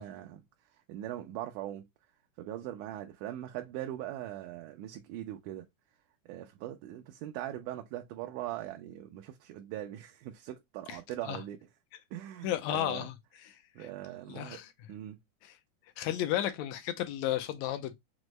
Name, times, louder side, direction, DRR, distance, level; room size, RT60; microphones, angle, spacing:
voice 1, 0.0-1.9 2.4-5.7 6.3-11.6 12.1-13.1 13.8-14.6 14.9-15.2, right 13 dB, 85° right, 2.1 m, -41 dB
voice 2, 12.4-13.1 13.8-13.9 14.3-14.7 15.4-15.5 16.0-17.9, left 12 dB, 80° left, 1.7 m, -33 dB
6.2 x 2.1 x 3.0 m
omnidirectional pair, 3.6 m